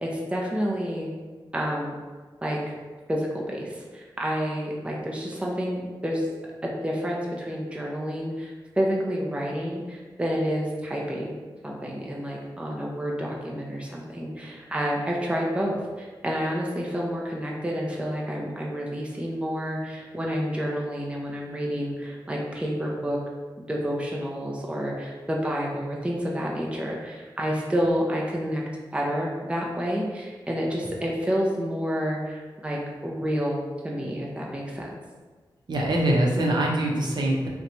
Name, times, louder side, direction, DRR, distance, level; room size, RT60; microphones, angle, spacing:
voice 1, 0.0-1.1 1.5-2.0 2.4-2.8 3.1-6.3 6.6-11.4 11.6-23.2 23.6-28.6 28.9-34.9, equal, 15° right, -3 dB, 0.5 m, -29 dB
voice 2, 35.7-37.5, right 1 dB, 60° right, -2 dB, 0.7 m, -23 dB
2.9 x 2.2 x 3.8 m, 1.4 s
cardioid pair, 65°, 9 cm